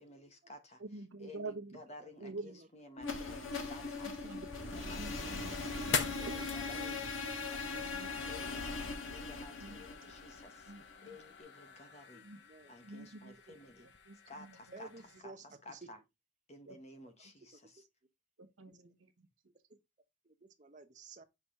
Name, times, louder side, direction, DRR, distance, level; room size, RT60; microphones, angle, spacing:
voice 1, 0.0-0.8 1.2-10.7 11.0-12.3 12.7-13.9 14.3-14.9 15.2-16.0 16.5-17.8, left 1 dB, 35° left, 1.1 m, -54 dB
voice 2, 0.8-1.8 2.2-2.5 4.2-4.5 4.8-6.5 7.8-8.1 8.4-8.5 9.6-9.8 10.7-10.8 12.2-12.4 12.8-14.8 16.7-16.8 18.4-19.3, right 3 dB, 85° right, 1.1 m, -47 dB
voice 3, 2.0-2.7 3.8-3.9 12.1-12.8 14.7-15.8 17.8-17.9 20.2-21.2, right 3 dB, 40° right, 0.8 m, -54 dB
sound 1, 3.0-10.9, left 3 dB, 85° left, 1.5 m, -40 dB
sound 2, 4.2-15.2, left 6 dB, 60° left, 0.9 m, -45 dB
5.9 x 4.4 x 3.6 m
head